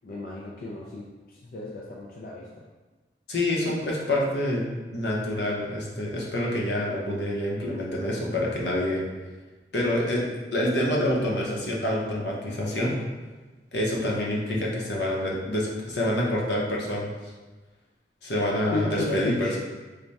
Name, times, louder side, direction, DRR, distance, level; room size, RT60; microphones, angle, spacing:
voice 1, 0.0-2.7 18.7-19.5, left 2 dB, 55° left, -4 dB, 0.4 m, -34 dB
voice 2, 3.3-4.6 4.9-9.0 9.7-10.2 10.5-12.9 13.7-17.1 18.2-19.6, left 1 dB, 75° left, -3 dB, 0.7 m, -27 dB
3.3 x 2.1 x 4.0 m, 1.2 s
head